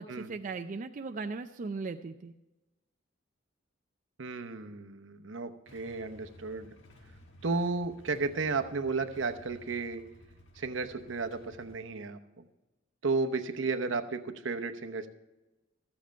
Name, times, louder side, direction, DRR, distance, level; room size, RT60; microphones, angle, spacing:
voice 1, 0.0-2.3, right 4 dB, 40° right, 6 dB, 0.4 m, -38 dB
voice 2, 4.2-6.7 7.4-10.0 10.6-12.2 13.0-15.1, right 4 dB, 75° right, 8 dB, 0.9 m, -33 dB
Motorcycle / Engine starting / Idling, 5.7-11.8, equal, 70° left, 1.4 m, -55 dB
14.0 x 7.4 x 4.5 m, 1.0 s
head